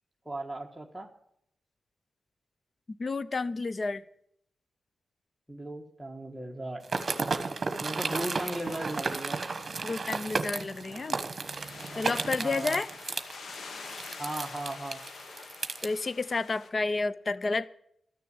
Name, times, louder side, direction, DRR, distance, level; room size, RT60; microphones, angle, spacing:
voice 1, 0.2-1.1 5.5-6.8 7.8-9.4 12.4-12.8 14.2-15.0, right 1 dB, 5° right, 1.5 m, -37 dB
voice 2, 2.9-4.0 9.8-11.2 12.0-12.9 15.8-17.7, left 3 dB, 40° left, 0.6 m, -30 dB
sound 1, 6.8-15.9, right 4 dB, 40° right, 1.2 m, -33 dB
sound 2, 8.1-16.7, left 4 dB, 70° left, 1.4 m, -47 dB
13.5 x 6.7 x 9.5 m
cardioid pair, 95°, 0 cm